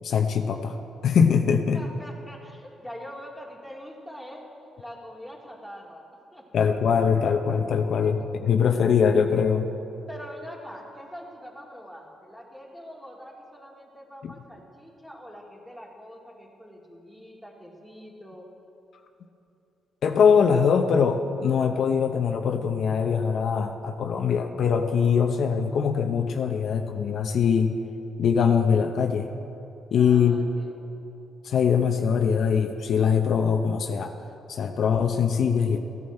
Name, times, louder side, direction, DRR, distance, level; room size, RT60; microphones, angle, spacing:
voice 1, 0.0-0.8 1.0-1.8 6.5-9.7 14.2-14.3 20.0-27.8 28.2-29.3 29.9-30.4 31.4-34.1 34.5-35.8, left 6 dB, 60° left, 5 dB, 0.7 m, -22 dB
voice 2, 1.7-4.4 4.8-6.1 6.3-6.7 10.1-18.5 29.9-30.7, equal, ahead, -2 dB, 2.2 m, -43 dB
15.5 x 10.5 x 4.4 m, 2.8 s
cardioid pair, 90°, 0 cm